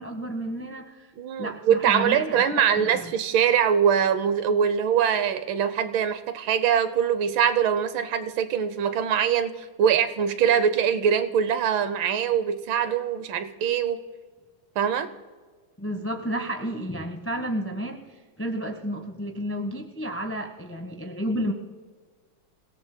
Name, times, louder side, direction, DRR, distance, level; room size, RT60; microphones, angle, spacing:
voice 1, 0.0-1.1 1.4-3.1 15.8-21.5, equal, 15° left, 3 dB, 0.5 m, -31 dB
voice 2, 1.2-9.5 9.8-14.0 14.8-15.1, right 8 dB, 75° right, 11 dB, 1.6 m, -23 dB
29.0 x 17.0 x 2.2 m, 1.5 s
omnidirectional pair, 2.3 m